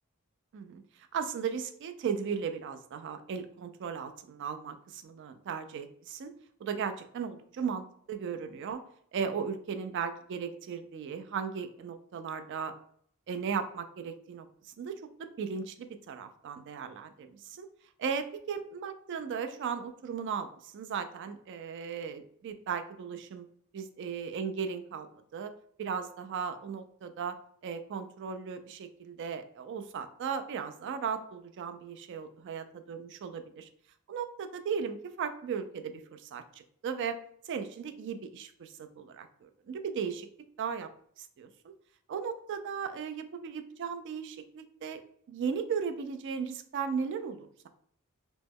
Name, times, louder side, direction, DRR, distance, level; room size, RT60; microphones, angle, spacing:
voice 1, 1.1-6.3 6.6-8.8 9.1-12.7 13.3-14.5 14.8-15.0 15.4-17.7 18.0-23.5 23.7-25.5 25.8-27.4 27.6-33.7 34.1-37.2 37.5-40.3 40.6-40.9 41.2-41.7 42.1-45.0 45.3-47.7, right 6 dB, 55° right, 9 dB, 0.3 m, -36 dB
2.9 x 2.1 x 3.5 m, 0.62 s
head